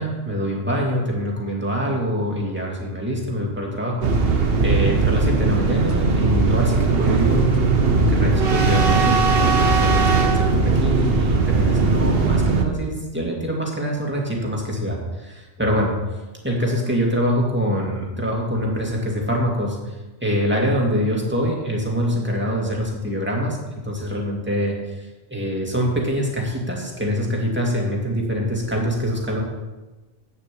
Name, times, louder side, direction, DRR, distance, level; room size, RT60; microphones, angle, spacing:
voice 1, 0.0-4.1 4.6-15.9 16.4-23.6 23.8-29.4, equal, 10° right, -2 dB, 2.3 m, -24 dB
sound 1, 4.0-12.6, right 4 dB, 60° right, 1.3 m, -19 dB
9.2 x 7.0 x 7.6 m, 1.1 s
omnidirectional pair, 1.1 m